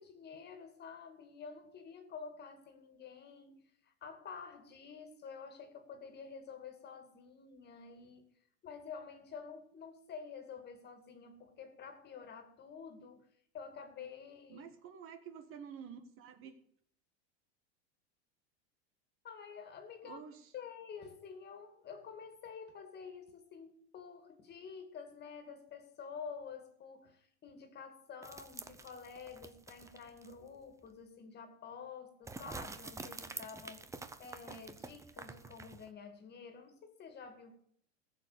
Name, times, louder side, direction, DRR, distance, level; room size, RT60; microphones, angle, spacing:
voice 1, 0.0-8.3 8.6-13.3 13.5-14.7 19.2-20.2 20.5-37.6, left 6 dB, 30° left, 2.3 m, -49 dB
voice 2, 14.5-16.5 20.0-20.5, right 7 dB, 40° right, 1.5 m, -50 dB
sound 1, 28.2-30.5 30.9-31.0 32.3-35.9, right 3 dB, 10° right, 0.7 m, -48 dB
15.0 x 7.1 x 6.7 m
supercardioid pair, 130°, 34 cm